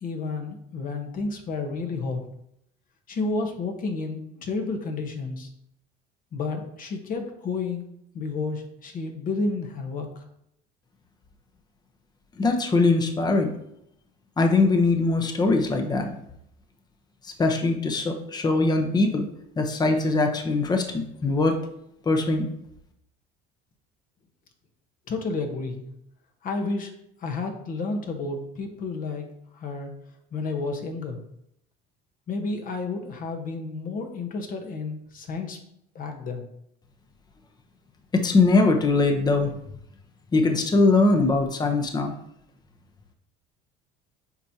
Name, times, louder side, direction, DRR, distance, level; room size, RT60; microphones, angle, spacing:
voice 1, 0.0-2.2 3.1-5.5 6.3-7.8 8.1-10.2 25.1-25.9 26.4-26.9 27.2-29.2 29.5-29.9 30.3-31.2 32.3-35.6 35.9-36.4, left 3 dB, 45° left, 3 dB, 1.2 m, -31 dB
voice 2, 12.4-13.6 14.4-16.1 17.2-19.3 19.6-21.6 22.1-22.5 38.1-39.5 40.3-42.1, left 3 dB, 20° left, 5 dB, 0.9 m, -21 dB
8.2 x 4.4 x 2.8 m, 0.76 s
supercardioid pair, 100°, 19 cm